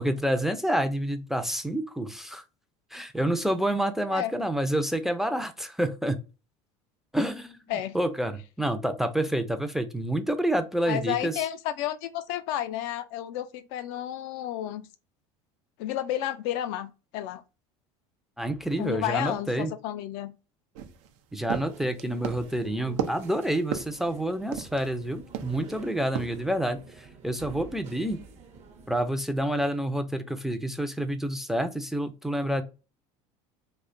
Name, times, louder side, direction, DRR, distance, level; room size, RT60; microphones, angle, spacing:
voice 1, 0.0-2.4 2.9-6.2 7.1-11.4 18.4-19.7 21.3-28.2 28.9-32.6, right 1 dB, ahead, 0.4 m, -28 dB
voice 2, 10.9-14.9 15.8-17.4 18.8-20.3, left 12 dB, 70° left, 0.4 m, -31 dB
sound 1, 20.7-25.0 25.3-25.8 26.1-26.4, right 9 dB, 80° right, 0.5 m, -35 dB
sound 2, 21.6-29.1, right 4 dB, 45° right, 0.7 m, -48 dB
2.7 x 2.1 x 2.5 m
supercardioid pair, 95°, 16 cm